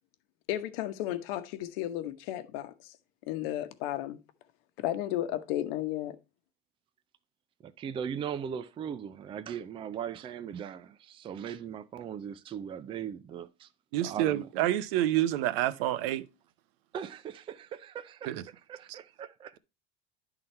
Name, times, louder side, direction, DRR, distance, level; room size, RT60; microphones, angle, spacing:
voice 1, 0.5-3.0 3.3-4.2 4.8-6.2, left 13 dB, 75° left, 1.0 m, -33 dB
voice 2, 7.6-13.7 14.0-14.5 16.9-18.4 18.7-19.6, right 8 dB, 20° right, 0.4 m, -39 dB
voice 3, 13.9-16.2 18.3-18.4 18.9-19.0, right 13 dB, 75° right, 0.8 m, -28 dB
11.0 x 3.9 x 4.4 m
cardioid pair, 150°, 30 cm